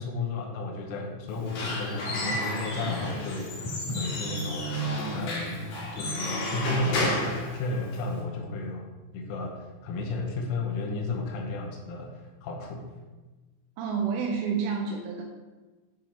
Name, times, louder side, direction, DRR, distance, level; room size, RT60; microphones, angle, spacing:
voice 1, 0.0-3.5 3.9-5.6 5.9-8.9 9.1-12.9, left 3 dB, 85° left, 1 dB, 3.4 m, -33 dB
Squeak / Wood, 1.3-8.2, left 1 dB, 65° left, 2.0 m, -31 dB
voice 2, 13.8-15.2, right 6 dB, 85° right, 0 dB, 3.1 m, -29 dB
9.0 x 3.8 x 4.5 m, 1.2 s
omnidirectional pair, 5.7 m